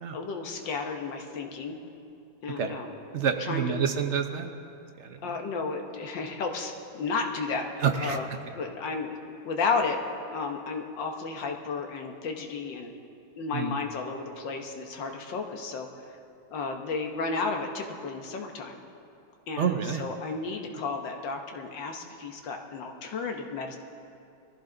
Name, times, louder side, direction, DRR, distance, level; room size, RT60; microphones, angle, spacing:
voice 1, 0.1-1.8 2.4-2.9 3.5-3.7 5.2-8.3 8.6-9.2 9.4-10.0 10.3-12.9 13.4-15.9 16.5-18.8 19.5-23.8, left 4 dB, 85° left, 3 dB, 1.9 m, -33 dB
voice 2, 3.1-4.5 5.0-5.4 7.8-8.2 13.5-13.8 19.6-20.0, right 7 dB, 55° right, 5 dB, 0.9 m, -28 dB
21.5 x 14.5 x 3.9 m, 2.6 s
omnidirectional pair, 1.9 m